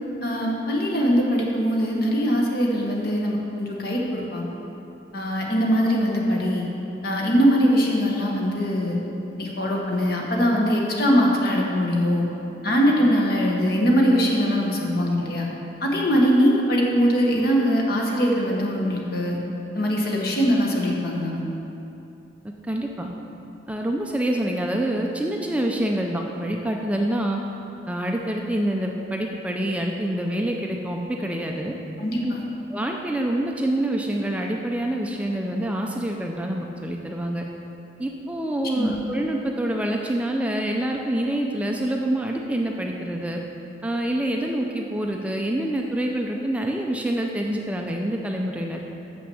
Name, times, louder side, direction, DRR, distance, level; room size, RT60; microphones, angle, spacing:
voice 1, 0.2-4.5 5.1-6.7 7.0-9.0 9.4-12.3 12.6-15.5 15.8-19.4 19.7-21.4 32.0-32.4 38.7-38.9, equal, 60° left, -2 dB, 1.3 m, -22 dB
voice 2, 22.7-23.1 23.7-27.4 27.9-31.7 32.2-32.3 32.7-37.4 38.0-43.4 43.8-48.8, right 1 dB, 5° right, 1 dB, 0.4 m, -26 dB
6.9 x 6.1 x 7.0 m, 2.9 s
head